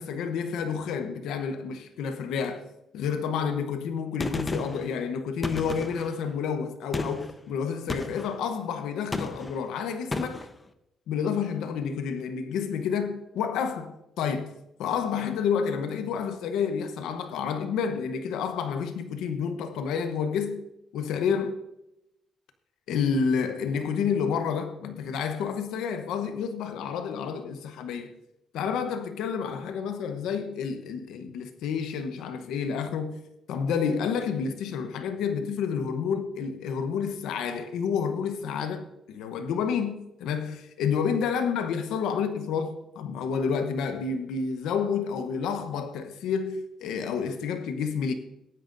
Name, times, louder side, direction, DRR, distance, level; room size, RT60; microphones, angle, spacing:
voice 1, 0.0-2.6 2.9-10.5 11.1-14.5 14.8-20.6 20.9-21.6 22.9-28.1 28.5-33.2 33.5-48.1, left 6 dB, 85° left, 0.9 m, -29 dB
Gunshot gunfire, 4.2-4.9 5.4-6.1 6.9-7.3 7.9-8.3 9.1-9.6 10.1-10.5, left 2 dB, 25° left, 0.8 m, -33 dB
18.0 x 9.1 x 2.6 m
cardioid pair, 90°, 0 cm